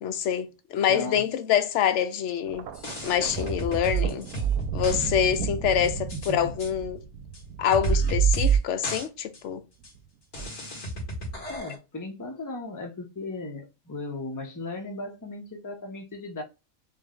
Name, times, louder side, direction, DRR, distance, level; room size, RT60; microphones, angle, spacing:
voice 1, 0.0-2.7 3.0-4.3 4.7-7.0 7.6-9.6, left 9 dB, 65° left, 0.8 m, -26 dB
voice 2, 0.9-1.3 6.3-6.5 11.5-16.4, left 2 dB, 20° left, 0.5 m, -36 dB
Thunder, 2.5-8.8 9.8-10.1, right 6 dB, 90° right, 1.1 m, -36 dB
sound 1, 2.7-5.1 5.3-5.4 5.8-6.3 6.6-6.7 7.3-7.4 7.7-8.6 8.8-9.1 9.3-9.4 9.8-9.9 10.3-11.8, right 6 dB, 45° left, 1.7 m, -27 dB
3.7 x 2.2 x 3.6 m
omnidirectional pair, 1.4 m